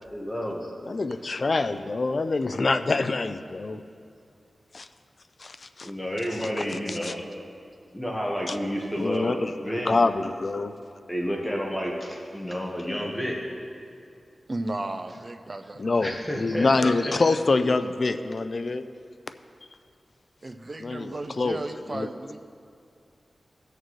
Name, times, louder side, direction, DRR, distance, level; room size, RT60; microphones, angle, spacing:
voice 1, 0.1-0.7 5.8-7.2 7.9-9.9 11.1-13.4 15.9-17.2, equal, 10° left, -2 dB, 1.3 m, -30 dB
voice 2, 0.8-3.8 4.7-4.9 5.4-5.9 6.2-7.1 8.5-8.6 9.0-9.6 9.9-10.7 15.8-18.8 20.8-21.6 21.9-22.1, left 3 dB, 50° left, 10 dB, 0.4 m, -26 dB
voice 3, 14.5-15.8 20.4-22.4, right 2 dB, 35° right, 8 dB, 0.6 m, -34 dB
17.5 x 6.6 x 3.1 m, 2.3 s
wide cardioid pair, 90°, 0 cm